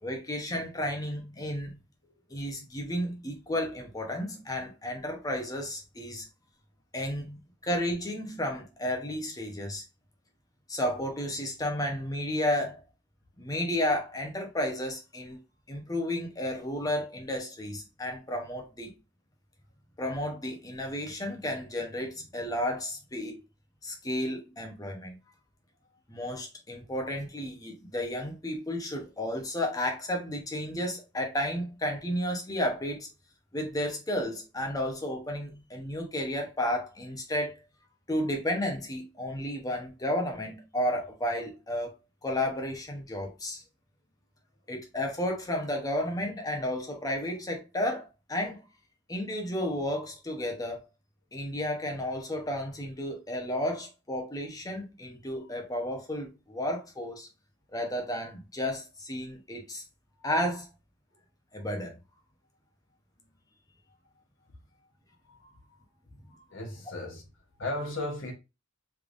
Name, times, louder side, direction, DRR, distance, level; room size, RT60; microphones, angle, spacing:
voice 1, 0.0-1.8 2.3-6.3 6.9-9.8 10.7-12.8 13.4-15.4 15.7-18.9 20.0-23.4 23.8-25.2 26.1-33.1 33.5-37.6 38.1-41.9 42.2-43.6 44.7-48.6 49.1-50.8 51.3-57.3 57.7-59.8 60.2-60.7 61.5-61.9, left 1 dB, 20° left, 0.8 m, -32 dB
voice 2, 65.2-65.6 66.3-67.3 67.6-68.3, left 1 dB, 70° left, 1.1 m, -37 dB
3.4 x 3.3 x 2.5 m
head